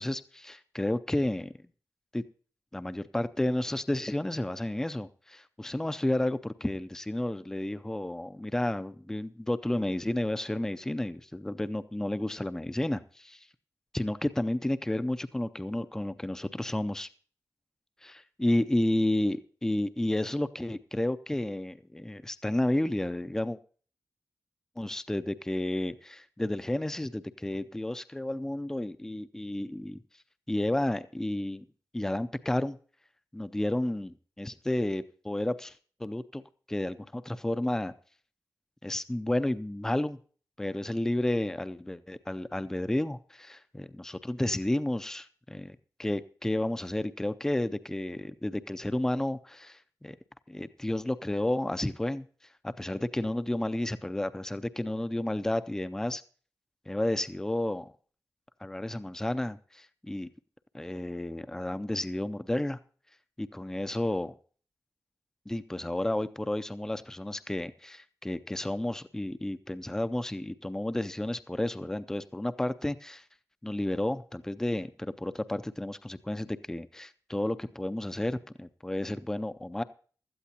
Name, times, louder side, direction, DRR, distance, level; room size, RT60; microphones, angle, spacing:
voice 1, 0.0-1.5 2.1-2.2 2.7-13.4 13.9-17.1 18.0-23.6 24.8-30.0 30.5-31.6 31.9-32.8 33.3-36.4 36.7-37.9 38.8-40.2 40.6-50.2 50.5-52.3 52.6-56.2 56.9-57.9 58.6-60.3 60.7-62.8 63.4-64.3 65.5-73.2 73.6-79.8, left 1 dB, 5° left, 13 dB, 0.5 m, -31 dB
16.5 x 12.5 x 2.9 m, 0.42 s
wide cardioid pair, 135°, 7 cm